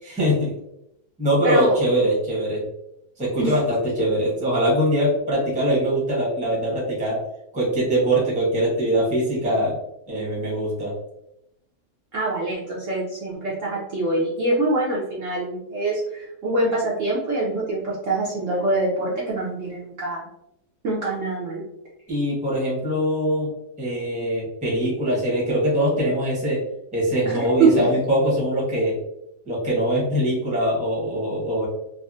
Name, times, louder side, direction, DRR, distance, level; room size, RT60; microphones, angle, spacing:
voice 1, 0.0-0.5 1.2-2.6 3.2-7.2 7.5-9.7 10.1-10.9 22.1-23.5 23.8-26.6 26.9-29.0 29.5-31.7, equal, 5° right, -6 dB, 0.7 m, -22 dB
voice 2, 1.4-1.8 3.4-3.6 12.1-20.2 20.8-21.6 27.4-27.9, right 2 dB, 65° right, -6 dB, 0.8 m, -24 dB
3.5 x 2.1 x 2.4 m, 0.83 s
omnidirectional pair, 1.8 m